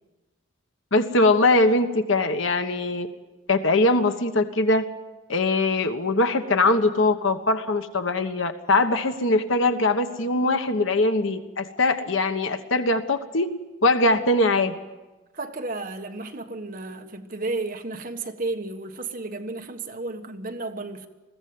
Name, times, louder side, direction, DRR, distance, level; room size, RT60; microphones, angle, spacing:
voice 1, 0.9-3.1 3.5-4.9 5.3-13.5 13.8-14.7, left 2 dB, 70° left, 1.3 m, -21 dB
voice 2, 15.3-21.1, right 2 dB, 40° right, 1.4 m, -33 dB
21.5 x 15.5 x 9.5 m
head